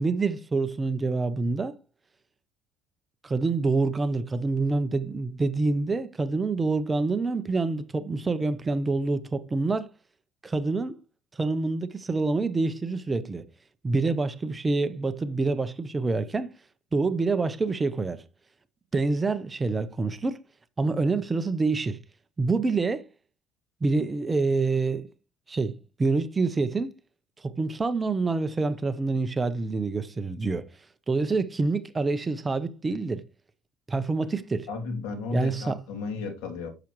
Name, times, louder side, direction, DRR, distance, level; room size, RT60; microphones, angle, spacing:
voice 1, 0.0-1.7 3.2-9.9 10.4-11.0 11.4-13.4 13.8-16.5 16.9-18.2 18.9-20.4 20.8-22.0 22.4-23.1 23.8-25.1 25.5-26.9 27.4-30.6 31.1-33.2 33.9-34.7 35.3-35.8, right 3 dB, 15° right, 0.6 m, -26 dB
voice 2, 34.7-36.7, left 4 dB, 90° left, 2.7 m, -33 dB
9.8 x 7.1 x 3.0 m
cardioid pair, 150°, 0 cm